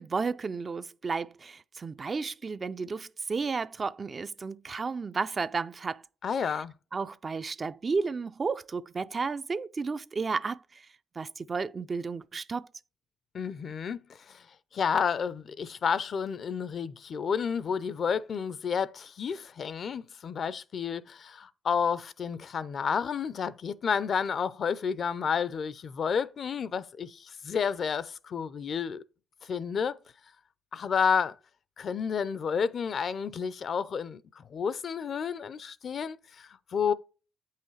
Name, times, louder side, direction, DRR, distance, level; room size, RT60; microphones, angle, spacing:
voice 1, 0.0-6.0 6.9-10.9 11.2-12.7, right 4 dB, 35° right, 0.3 m, -33 dB
voice 2, 6.2-6.7 13.3-14.4 14.7-29.0 29.4-30.0 30.7-31.4 31.8-36.9, left 6 dB, 55° left, 0.5 m, -31 dB
8.4 x 5.6 x 3.2 m
cardioid pair, 90°, 0 cm